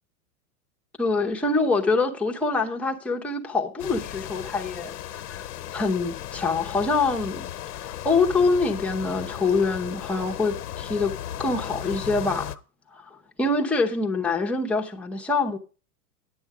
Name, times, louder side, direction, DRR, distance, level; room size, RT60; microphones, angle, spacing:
voice 1, 1.0-4.9 5.3-5.5 5.7-7.5 7.8-11.1 11.4-12.6 12.9-15.6, left 3 dB, 5° left, 0.8 m, -25 dB
sound 1, 3.8-12.6, left 11 dB, 85° left, 1.0 m, -36 dB
10.5 x 7.9 x 4.8 m
supercardioid pair, 150°, 46 cm